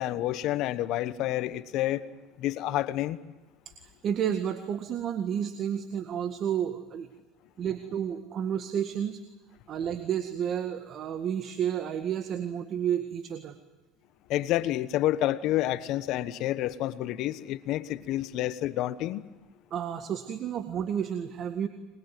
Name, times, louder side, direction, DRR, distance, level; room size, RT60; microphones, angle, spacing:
voice 1, 0.0-2.0 2.4-3.2 14.3-19.2, left 14 dB, 60° left, 15 dB, 1.1 m, -29 dB
voice 2, 3.7-7.1 7.6-9.2 9.7-13.6 19.7-21.7, right 9 dB, 45° right, 9 dB, 1.9 m, -31 dB
25.5 x 21.5 x 9.4 m, 1.1 s
supercardioid pair, 95°, 0 cm